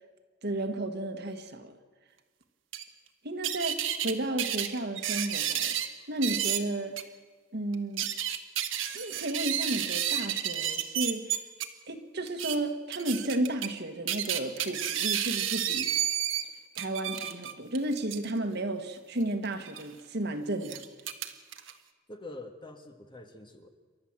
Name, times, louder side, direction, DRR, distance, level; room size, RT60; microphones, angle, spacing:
voice 1, 0.4-1.8 3.2-5.7 6.1-7.0 7.5-8.1 8.9-11.3 11.9-15.9 16.8-20.8, right 1 dB, 55° right, 6 dB, 1.6 m, -33 dB
sound 1, 2.7-2.8 3.4-4.1 4.4-5.9 6.2-6.6 7.0-7.1 7.7-11.7 12.3-12.6 12.9-13.7 14.1-16.4 16.8-18.3 19.6-19.8 20.6-21.7, right 11 dB, 75° right, 1.5 m, -31 dB
voice 2, 22.1-23.7, left 2 dB, 25° left, 6 dB, 1.6 m, -45 dB
28.5 x 12.5 x 7.5 m, 1.5 s
head